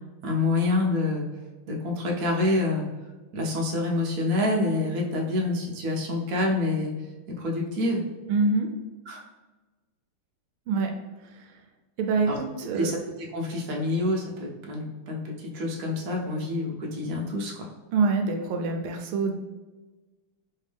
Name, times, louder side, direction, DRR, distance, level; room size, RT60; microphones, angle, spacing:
voice 1, 0.2-1.2 1.7-2.9 3.3-6.9 7.4-8.0 9.1-9.2 12.3-12.4 12.7-13.0 13.3-17.7, left 2 dB, 65° right, -1 dB, 0.9 m, -27 dB
voice 2, 8.3-8.7 10.7-10.9 12.0-12.9 17.9-19.3, right 4 dB, 80° right, 4 dB, 1.4 m, -25 dB
3.5 x 3.2 x 3.3 m, 1.2 s
omnidirectional pair, 2.4 m